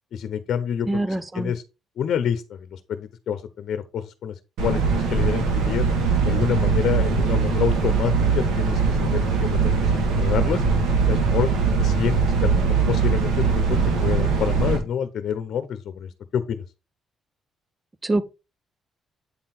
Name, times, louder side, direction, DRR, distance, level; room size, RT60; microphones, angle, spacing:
voice 1, 0.1-1.6 2.0-4.3 4.6-5.8 6.2-10.6 11.1-11.5 11.8-16.6, left 8 dB, 65° left, 0.8 m, -28 dB
voice 2, 0.9-1.5 18.0-18.2, right 2 dB, 20° right, 0.7 m, -24 dB
sound 1, 4.6-14.8, right 5 dB, 90° right, 2.1 m, -21 dB
8.5 x 3.8 x 4.3 m
cardioid pair, 90°, 0 cm